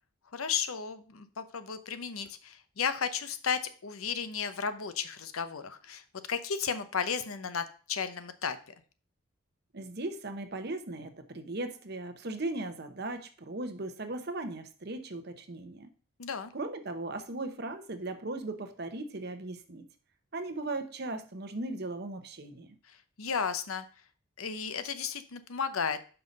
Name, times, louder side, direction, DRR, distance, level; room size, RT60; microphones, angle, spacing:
voice 1, 0.3-6.0 6.3-8.6 16.2-16.5 23.2-23.8 24.4-26.0, left 6 dB, 90° left, 11 dB, 0.8 m, -34 dB
voice 2, 9.7-15.9 16.5-19.9 20.3-22.7, right 2 dB, 50° right, 8 dB, 0.9 m, -38 dB
5.7 x 5.5 x 5.2 m, 0.40 s
head